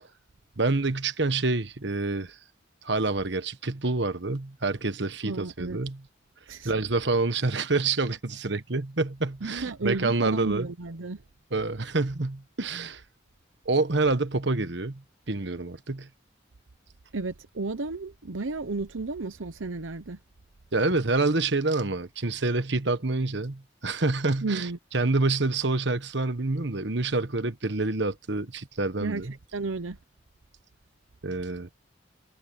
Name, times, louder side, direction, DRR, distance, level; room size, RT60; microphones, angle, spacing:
voice 1, 0.6-2.3 2.8-6.0 6.6-10.7 11.5-13.0 13.6-15.0 15.3-16.1 20.7-24.7 24.9-29.3 31.2-31.7, right 3 dB, 65° right, 1.4 m, -27 dB
voice 2, 5.2-5.8 6.5-6.7 9.4-11.2 17.1-20.2 24.4-24.8 29.0-30.0, right 3 dB, 90° right, 0.9 m, -33 dB
head